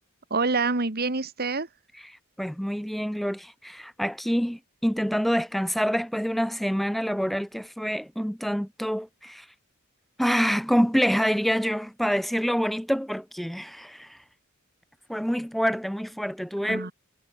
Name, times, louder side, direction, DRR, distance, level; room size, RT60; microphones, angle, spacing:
voice 1, 0.3-1.7 16.7-16.9, right 3 dB, 45° right, 1.8 m, -26 dB
voice 2, 2.0-9.5 10.2-14.2 15.1-16.9, equal, ahead, 0.7 m, -27 dB
head